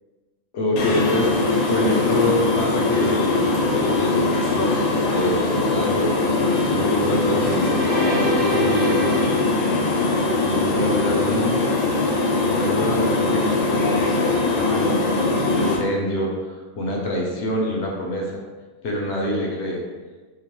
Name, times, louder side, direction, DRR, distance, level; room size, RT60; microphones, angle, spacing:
voice 1, 0.5-9.3 10.4-11.6 12.2-18.3 18.8-19.8, equal, 65° left, -2 dB, 0.7 m, -26 dB
sound 1, 0.8-15.8, left 3 dB, 90° left, 1.1 m, -21 dB
sound 2, 7.1-10.5, equal, 90° right, 1.1 m, -30 dB
2.9 x 2.1 x 2.9 m, 1.3 s
omnidirectional pair, 1.5 m